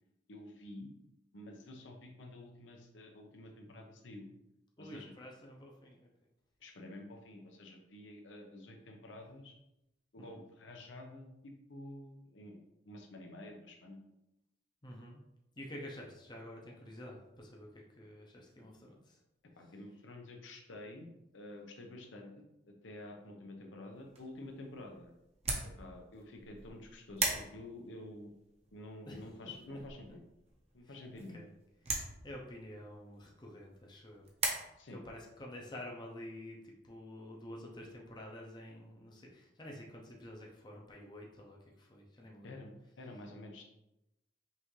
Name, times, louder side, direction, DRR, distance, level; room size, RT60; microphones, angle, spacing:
voice 1, 0.3-0.9 1.3-4.2 4.8-5.1 6.6-9.5 10.1-14.0 19.6-21.1 21.3-25.2 25.6-28.3 28.7-30.2 30.7-31.4 34.8-35.0 42.4-43.6, left 1 dB, 80° left, 2 dB, 0.8 m, -49 dB
voice 2, 4.8-6.1 10.2-10.4 14.8-15.2 15.6-17.7 18.0-19.2 29.0-29.8 30.1-30.2 30.8-31.0 31.3-31.5 32.2-34.3 34.9-42.6, left 1 dB, 25° left, -1 dB, 0.6 m, -49 dB
sound 1, 23.9-34.5, right 3 dB, 35° right, 0.8 m, -41 dB
5.5 x 2.7 x 3.1 m, 0.88 s
head